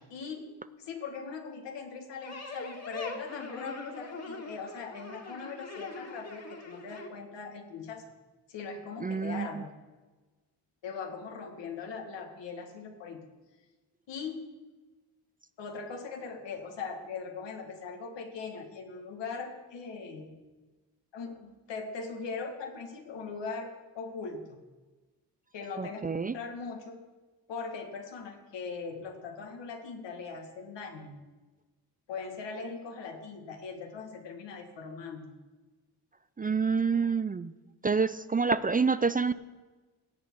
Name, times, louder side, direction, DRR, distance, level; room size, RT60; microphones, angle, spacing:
voice 1, 0.1-0.5 0.8-8.0 8.5-9.7 10.8-13.2 14.1-14.5 15.6-20.4 21.1-23.7 23.9-24.6 25.5-26.1 26.3-27.0 27.5-31.2 32.1-35.3, left 5 dB, 85° left, 4 dB, 1.8 m, -40 dB
sound 1, 2.2-7.1, left 3 dB, 35° left, 2.2 m, -42 dB
voice 2, 9.0-9.6 25.8-26.4 36.4-37.5 37.8-39.3, right 5 dB, 20° right, 14 dB, 0.4 m, -27 dB
17.0 x 8.3 x 4.7 m, 1.2 s
cardioid pair, 60°, 42 cm